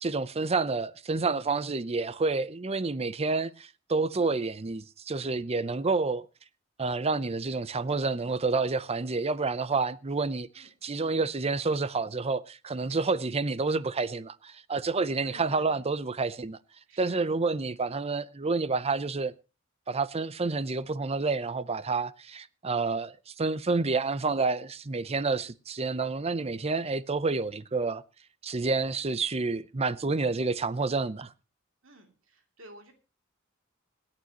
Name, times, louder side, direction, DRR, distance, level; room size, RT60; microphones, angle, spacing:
voice 1, 0.0-6.3 6.8-16.6 17.0-19.3 19.9-28.0 28.4-31.3, right 3 dB, 30° right, 0.6 m, -29 dB
voice 2, 15.2-15.8 16.9-17.2 31.8-32.9, right 1 dB, 70° right, 2.8 m, -51 dB
26.5 x 9.0 x 3.0 m
head